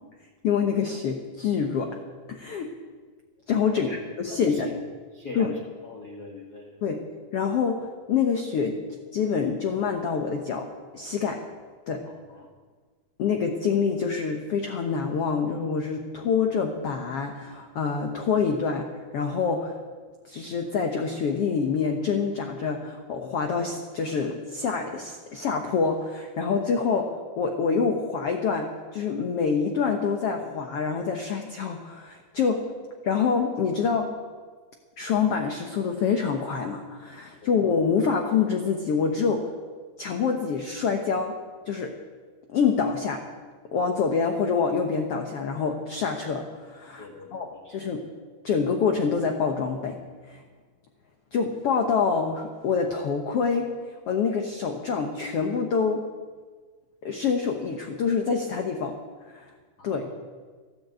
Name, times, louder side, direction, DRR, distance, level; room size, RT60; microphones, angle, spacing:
voice 1, 0.4-1.9 2.3-2.7 3.5-3.9 4.2-4.7 5.3-5.6 6.8-7.0 7.3-8.8 9.1-10.7 10.9-11.4 11.9-12.0 13.2-18.9 19.1-19.7 20.2-27.1 27.4-32.6 33.0-34.1 35.0-39.5 40.0-41.3 41.6-41.9 42.5-43.2 43.7-48.0 48.4-50.0 50.3-50.4 51.3-53.7 54.1-56.0 57.0-59.0 59.3-59.5 59.8-60.0, left 5 dB, 85° left, 3 dB, 1.3 m, -26 dB
voice 2, 3.7-4.0 4.3-4.8 5.1-6.8 12.0-12.5 37.4-37.6 47.0-47.9 59.8-60.1, left 2 dB, 50° left, -1 dB, 1.1 m, -42 dB
14.0 x 12.0 x 8.0 m, 1.5 s
omnidirectional pair, 4.3 m